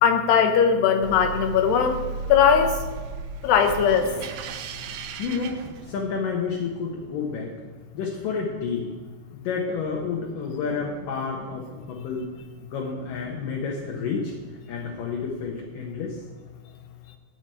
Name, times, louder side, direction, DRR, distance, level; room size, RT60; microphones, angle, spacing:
voice 1, 0.0-2.0 2.3-2.7 3.4-4.1, left 7 dB, 80° left, 6 dB, 3.2 m, -19 dB
sound 1, 1.0-6.3, right 5 dB, 75° right, 2.3 m, -35 dB
voice 2, 5.2-7.5 7.9-8.9 9.3-12.3 12.7-14.3 14.7-16.2, left 5 dB, 65° left, -1 dB, 2.6 m, -30 dB
14.0 x 5.1 x 9.1 m, 1.4 s
omnidirectional pair, 4.8 m